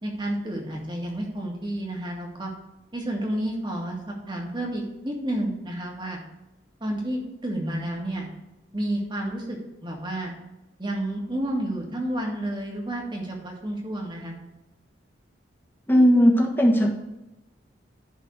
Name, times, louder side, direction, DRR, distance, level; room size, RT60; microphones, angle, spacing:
voice 1, 0.0-2.5 2.9-6.2 6.8-8.3 8.7-9.6 9.8-10.3 10.8-14.4, right 1 dB, 25° right, -1 dB, 1.9 m, -30 dB
voice 2, 15.9-16.9, equal, 10° left, -1 dB, 1.4 m, -17 dB
11.0 x 4.1 x 6.4 m, 0.99 s
head